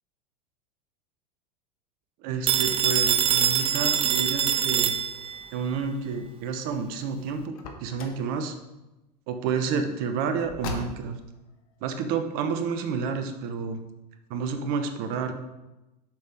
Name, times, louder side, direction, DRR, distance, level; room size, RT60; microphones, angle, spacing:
voice 1, 2.2-4.9 5.5-8.5 9.3-11.2 11.8-13.8 14.3-15.3, right 5 dB, 45° right, 7 dB, 0.9 m, -30 dB
Telephone, 2.5-5.5, right 9 dB, 25° right, 0.5 m, -24 dB
Car, 7.5-8.3 10.4-11.3, left 4 dB, 55° left, 1.1 m, -38 dB
7.6 x 5.4 x 4.6 m, 1.0 s
figure-of-eight pair, 85°, 21 cm